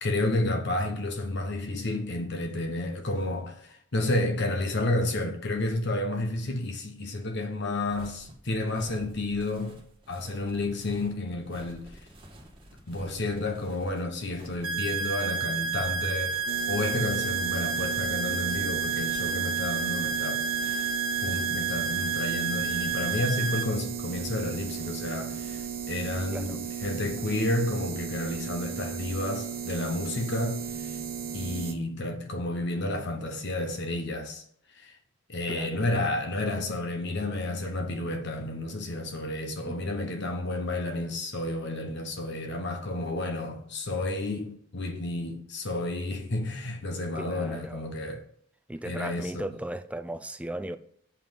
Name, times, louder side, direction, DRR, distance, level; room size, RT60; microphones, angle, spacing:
voice 1, 0.0-9.8 10.1-11.9 12.9-16.4 16.7-20.9 21.2-31.0 31.3-34.4 34.7-35.0 35.3-48.2 48.9-49.5, left 2 dB, 55° left, 1.0 m, -31 dB
sound 1, 7.9-27.1, right 1 dB, 25° right, 1.8 m, -52 dB
sound 2, 14.6-23.6, right 6 dB, 85° right, 1.1 m, -30 dB
sound 3, 16.5-31.7, right 7 dB, 45° right, 1.0 m, -36 dB
voice 2, 26.3-26.6 35.5-35.8 39.6-40.1 47.2-47.9 48.7-50.8, right 1 dB, 5° right, 0.4 m, -37 dB
7.0 x 5.7 x 5.4 m
head